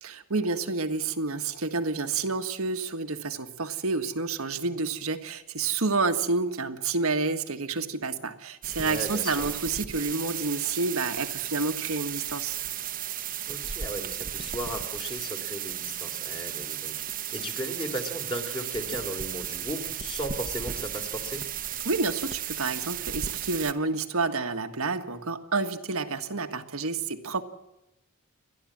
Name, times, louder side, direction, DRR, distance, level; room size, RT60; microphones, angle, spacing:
voice 1, 0.0-12.6 21.8-27.4, right 3 dB, 85° right, 1.7 m, -29 dB
sound 1, 8.6-23.7, right 10 dB, 40° right, 1.0 m, -34 dB
voice 2, 8.8-9.6 13.5-21.4, equal, 25° left, 3.1 m, -36 dB
30.0 x 12.0 x 7.5 m
head